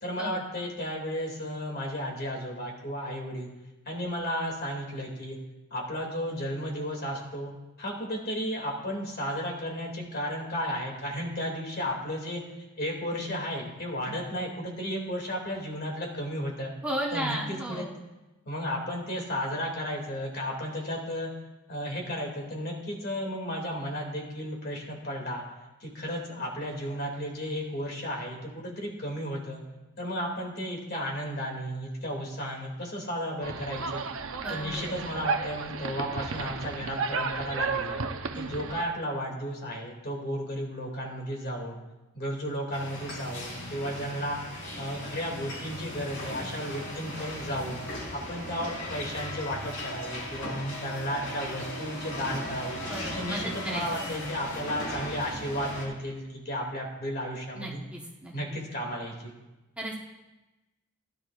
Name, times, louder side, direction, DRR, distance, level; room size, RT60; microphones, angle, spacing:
voice 1, 0.0-3.5 3.9-5.4 5.7-7.5 7.8-12.4 12.8-16.7 17.1-17.9 18.5-21.3 21.7-25.4 25.8-29.6 30.0-34.0 34.5-37.9 38.3-41.8 42.1-47.8 48.1-52.8 53.1-57.8 58.3-59.4, equal, 50° left, 0 dB, 2.5 m, -34 dB
voice 2, 16.8-18.0 34.4-34.9 52.8-54.3 57.5-58.6 59.8-60.0, right 1 dB, 5° right, -3 dB, 1.1 m, -35 dB
sound 1, 33.4-38.8, right 4 dB, 70° right, 0.7 m, -33 dB
sound 2, 42.7-55.9, left 1 dB, 65° left, 4.5 m, -37 dB
17.0 x 10.5 x 2.5 m, 1.1 s
head